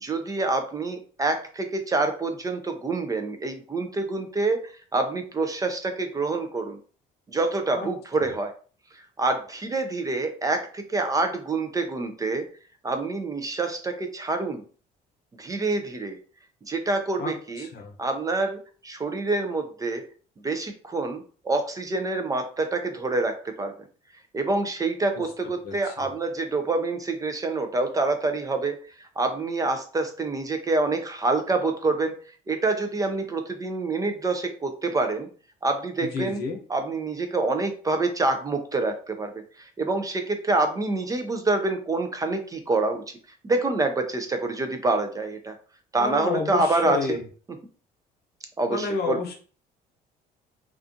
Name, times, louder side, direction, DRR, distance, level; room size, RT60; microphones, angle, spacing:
voice 1, 0.0-6.8 7.3-8.5 9.2-12.5 12.8-14.6 15.4-16.2 16.7-17.7 18.0-20.0 20.4-23.8 24.3-28.8 29.2-32.1 32.5-35.3 35.6-36.4 36.7-39.3 39.6-43.0 43.4-45.5 45.9-47.2 48.6-49.2, right 3 dB, 20° right, 6 dB, 0.3 m, -26 dB
voice 2, 17.2-17.9 25.6-26.1 36.0-36.6 46.0-47.2 48.7-49.3, left 4 dB, 70° left, 3 dB, 0.7 m, -30 dB
2.4 x 2.3 x 2.5 m, 0.40 s
cardioid pair, 110°, 17 cm